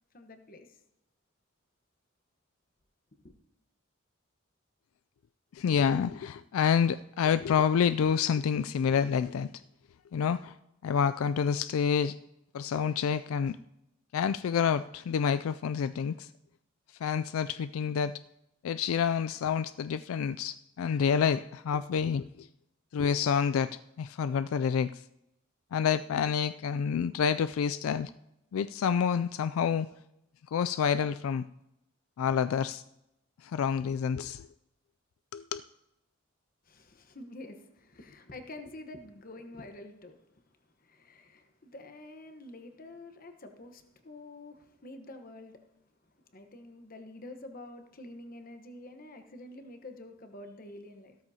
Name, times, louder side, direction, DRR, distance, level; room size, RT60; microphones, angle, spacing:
voice 1, 0.1-0.8 3.2-3.3 36.6-40.3 40.8-45.7 46.3-51.2, left 2 dB, 45° left, 7 dB, 1.1 m, -48 dB
voice 2, 5.5-9.5 10.1-10.5 10.8-12.2 12.5-13.6 14.1-16.3 17.0-18.2 18.6-22.5 22.9-25.0 25.7-28.1 28.5-29.9 30.5-31.4 32.2-32.8 33.4-34.5 35.3-35.6, left 7 dB, 80° left, 14 dB, 0.3 m, -28 dB
15.0 x 13.0 x 2.8 m, 0.87 s
head